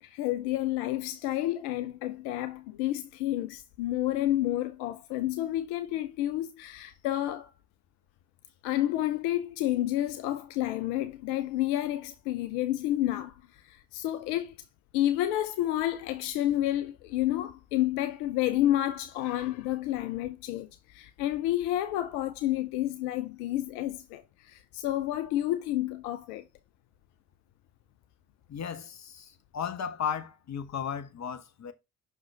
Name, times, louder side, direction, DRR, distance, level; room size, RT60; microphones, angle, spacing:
voice 1, 0.0-7.5 8.6-14.6 14.9-26.5, left 13 dB, 75° left, 0.6 m, -30 dB
voice 2, 28.5-31.7, left 7 dB, 40° left, 1.1 m, -35 dB
6.1 x 5.2 x 3.3 m
hypercardioid pair, 45°, 40 cm